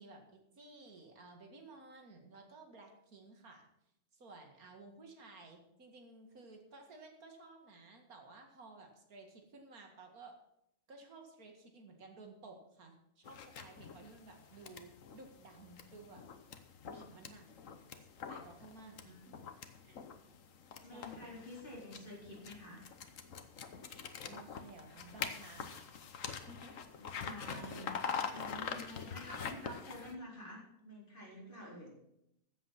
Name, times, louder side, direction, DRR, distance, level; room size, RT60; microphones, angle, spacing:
voice 1, 0.0-3.7 4.1-10.4 10.9-16.3 16.9-17.5 18.3-19.5 19.8-20.0 20.9-21.4 24.3-25.9 26.2-26.8 27.3-27.4 27.6-27.8 28.9-29.5, right 3 dB, 80° right, 3 dB, 2.4 m, -55 dB
sound 1, 13.2-30.2, left 6 dB, 65° left, 1.4 m, -45 dB
voice 2, 20.8-22.9 26.9-31.9, left 1 dB, 35° left, -4 dB, 4.5 m, -49 dB
14.5 x 7.9 x 5.8 m, 0.80 s
omnidirectional pair, 1.5 m